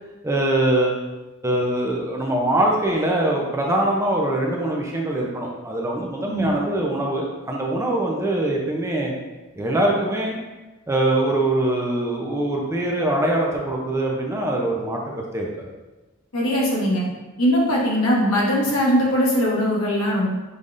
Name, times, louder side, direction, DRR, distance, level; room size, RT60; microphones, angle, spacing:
voice 1, 0.2-1.1 1.4-9.1 9.6-10.4 10.9-15.5, right 1 dB, 15° right, -1 dB, 0.5 m, -23 dB
voice 2, 16.3-17.1 17.4-20.3, equal, 80° left, -4 dB, 1.2 m, -20 dB
5.4 x 3.4 x 2.5 m, 1.1 s
head